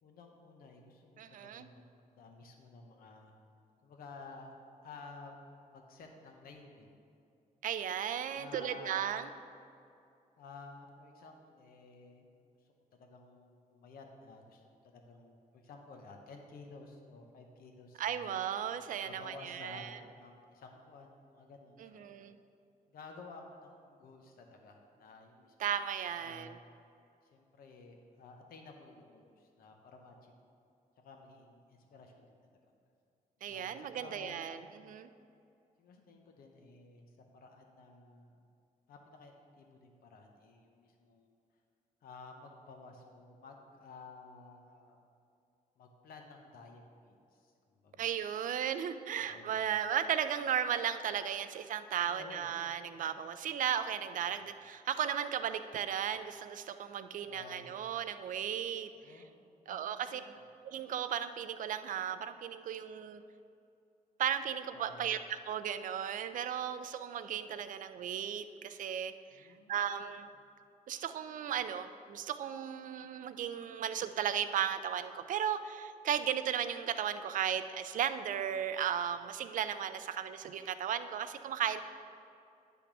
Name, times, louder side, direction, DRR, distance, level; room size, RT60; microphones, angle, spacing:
voice 1, 0.0-1.8 2.1-3.3 3.8-4.5 4.8-5.4 5.7-7.0 8.4-9.6 10.4-12.3 13.0-14.6 14.9-18.4 19.0-22.2 22.9-25.5 26.2-26.5 27.3-30.3 31.0-32.4 33.5-34.6 35.8-38.4 38.9-41.4 42.0-45.0 45.8-48.1 49.2-49.6 52.0-52.6 54.3-54.4 57.2-57.8 59.0-60.2 64.7-65.1 69.3-69.8, left 3 dB, 85° left, 3 dB, 0.8 m, -53 dB
voice 2, 1.2-1.7 7.6-9.3 18.0-20.0 21.8-22.4 25.6-26.5 33.4-35.1 48.0-58.9 59.1-59.2 59.7-60.2 60.6-63.2 64.2-70.3 70.9-81.8, right 9 dB, 60° right, 11 dB, 0.4 m, -35 dB
10.0 x 3.5 x 5.9 m, 2.5 s
cardioid pair, 115°, 15 cm